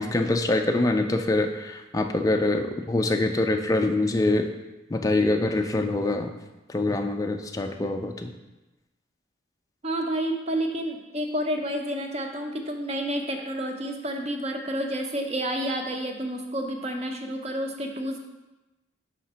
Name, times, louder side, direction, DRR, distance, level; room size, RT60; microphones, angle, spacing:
voice 1, 0.0-4.5 4.9-6.3 6.7-8.3, left 2 dB, 20° left, 5 dB, 0.3 m, -24 dB
voice 2, 9.8-18.2, right 1 dB, 35° right, 4 dB, 0.6 m, -30 dB
5.0 x 3.8 x 5.5 m, 1.0 s
head